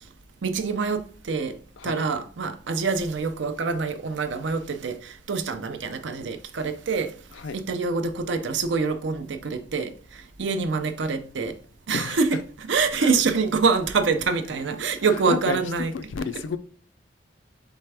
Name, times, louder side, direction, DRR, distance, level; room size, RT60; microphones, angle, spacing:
voice 1, 0.4-1.5 1.8-7.1 7.5-9.9 10.4-11.5 11.9-12.3 12.7-15.9, right 4 dB, 75° right, 0.5 m, -25 dB
voice 2, 7.3-7.6 11.9-12.2 13.0-13.1 15.1-15.6 15.9-16.6, left 5 dB, 85° left, 0.4 m, -31 dB
4.4 x 3.4 x 3.3 m
head